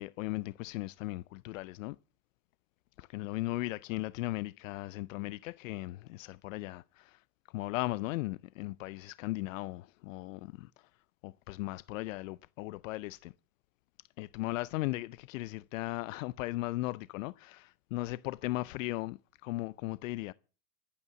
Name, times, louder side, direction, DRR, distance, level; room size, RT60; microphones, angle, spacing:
voice 1, 0.0-2.0 3.0-7.2 7.5-10.9 11.2-13.3 14.2-20.3, left 19 dB, 70° left, 0.6 m, -37 dB
14.0 x 8.7 x 6.9 m
supercardioid pair, 140°, 40 cm